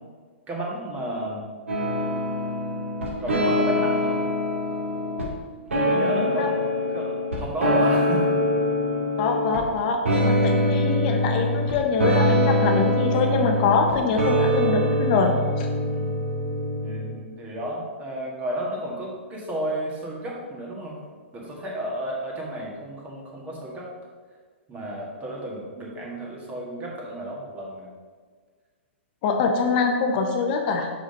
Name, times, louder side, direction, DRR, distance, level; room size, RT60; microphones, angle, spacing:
voice 1, 0.5-1.5 3.2-4.2 5.9-8.4 15.8-16.2 16.8-21.0 21.3-23.9 24.7-27.9, right 1 dB, 20° right, -2 dB, 1.8 m, -32 dB
sound 1, 1.7-5.2 5.7-9.7 10.1-17.1, equal, 85° right, 2.0 m, -23 dB
voice 2, 5.9-6.5 9.2-15.7 29.2-30.9, left 4 dB, 40° left, 3 dB, 0.8 m, -24 dB
5.8 x 4.9 x 5.2 m, 1.5 s
hypercardioid pair, 130°, 7 cm